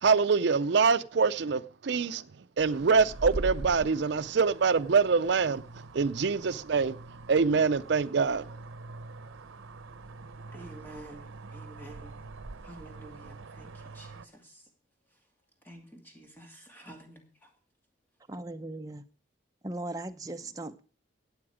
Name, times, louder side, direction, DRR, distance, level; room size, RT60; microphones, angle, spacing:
voice 1, 0.0-2.3 2.6-7.0 7.3-8.5, right 5 dB, 60° right, 0.5 m, -25 dB
sound 1, 2.6-14.3, right 2 dB, 85° right, 0.8 m, -43 dB
voice 2, 10.5-12.2 12.6-14.7 15.1-15.2 15.6-17.6, right 1 dB, 10° left, 2.5 m, -50 dB
voice 3, 18.3-19.0 19.6-20.8, right 2 dB, 20° right, 0.7 m, -38 dB
12.5 x 8.7 x 5.0 m
head